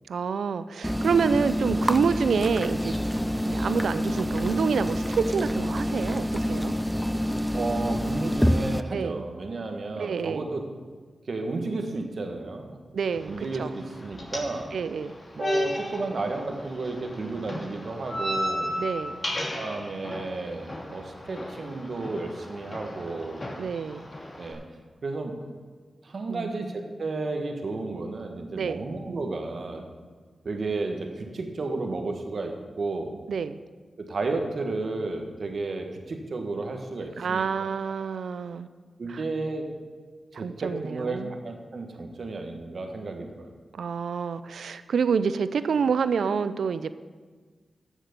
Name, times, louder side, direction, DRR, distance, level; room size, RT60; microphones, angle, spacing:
voice 1, 0.1-3.0 3.3-6.7 8.9-9.2 10.0-10.5 12.9-13.7 14.7-15.1 18.8-19.2 23.6-24.1 26.3-26.6 28.5-28.8 33.3-33.6 37.2-38.7 39.1-39.2 40.3-41.3 43.7-46.9, right 6 dB, 85° right, 13 dB, 0.4 m, -27 dB
sound 1, 0.8-8.8, equal, ahead, 0.4 m, -27 dB
voice 2, 7.5-10.6 11.2-12.8 13.2-14.7 15.3-18.7 19.5-23.5 24.4-24.6 25.0-25.4 26.0-29.8 30.4-33.2 34.0-37.4 39.0-39.7 40.3-43.5, right 3 dB, 70° right, 4 dB, 1.5 m, -32 dB
sound 2, 13.1-24.5, left 1 dB, 50° left, 2.9 m, -35 dB
13.5 x 7.3 x 5.3 m, 1.5 s
cardioid pair, 45°, 0 cm